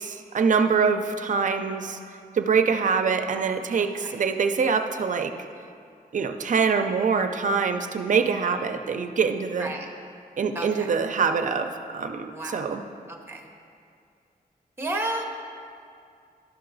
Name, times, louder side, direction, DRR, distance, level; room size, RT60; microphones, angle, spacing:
voice 1, 0.0-2.0 2.3-5.3 6.1-9.7 10.4-12.8, right 5 dB, 55° right, 7 dB, 0.5 m, -24 dB
voice 2, 10.5-10.9 12.3-12.7 13.1-13.5 14.8-15.2, right 1 dB, 15° right, 2 dB, 0.8 m, -32 dB
11.5 x 5.7 x 3.9 m, 2.4 s
wide cardioid pair, 175°, 16 cm